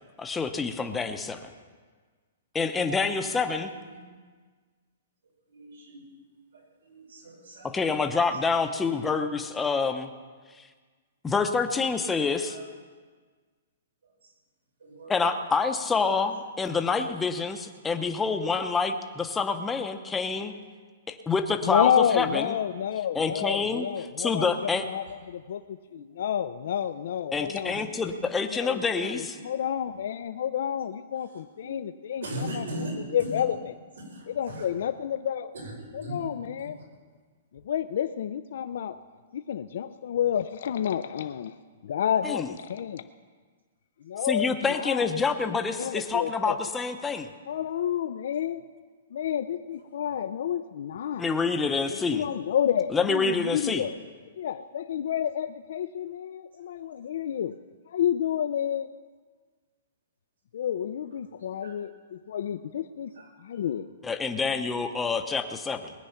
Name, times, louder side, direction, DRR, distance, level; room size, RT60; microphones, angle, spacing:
voice 1, 0.2-1.5 2.5-3.7 7.7-10.1 11.2-12.6 15.1-20.5 21.1-22.6 23.1-24.9 27.3-29.4 42.2-42.5 44.2-47.3 51.2-52.3 52.9-53.9 64.0-65.9, left 4 dB, 10° left, 7 dB, 0.7 m, -27 dB
voice 2, 3.2-4.0 5.5-6.1 6.5-8.5 8.8-9.1 12.4-12.7 14.0-14.3 14.8-15.6 15.8-16.3 17.8-18.0 23.8-23.9 25.9-26.2 27.8-28.1 29.4-29.5 31.1-31.7 32.2-33.4 34.0-34.7 35.5-36.2 36.6-36.8 39.9-40.1 42.0-42.2 49.1-49.3 51.9-52.1 61.4-61.7 62.3-62.5 63.1-63.3 63.7-63.8, right 1 dB, 85° right, 0 dB, 5.6 m, -41 dB
voice 3, 21.7-24.5 24.9-25.6 25.9-27.7 28.5-32.2 33.3-33.5 34.4-35.5 36.1-36.8 37.7-39.0 39.3-41.5 41.8-43.0 44.1-45.1 45.8-46.6 47.5-48.6 49.1-51.3 52.1-53.9 54.4-57.5 57.9-58.9 60.5-61.9 62.3-63.1 63.5-63.9, left 9 dB, 60° left, 10 dB, 0.5 m, -29 dB
19.5 x 9.3 x 5.8 m, 1.5 s
hypercardioid pair, 165°, 0 cm